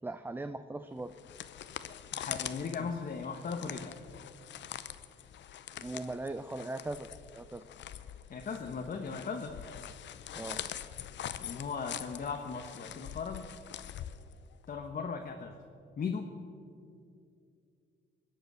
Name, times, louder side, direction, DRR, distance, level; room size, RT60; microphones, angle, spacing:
voice 1, 0.0-1.1 2.8-2.9 5.8-7.1 7.3-7.6 10.4-10.6, right 2 dB, 10° right, 11 dB, 0.5 m, -39 dB
sound 1, 1.0-14.7, left 10 dB, 65° left, 0.7 m, -44 dB
voice 2, 2.1-3.9 8.3-9.5 11.4-13.4 14.7-15.6 16.0-16.3, left 5 dB, 45° left, 3 dB, 1.1 m, -37 dB
21.0 x 8.0 x 6.3 m, 2.5 s
cardioid pair, 90°, 20 cm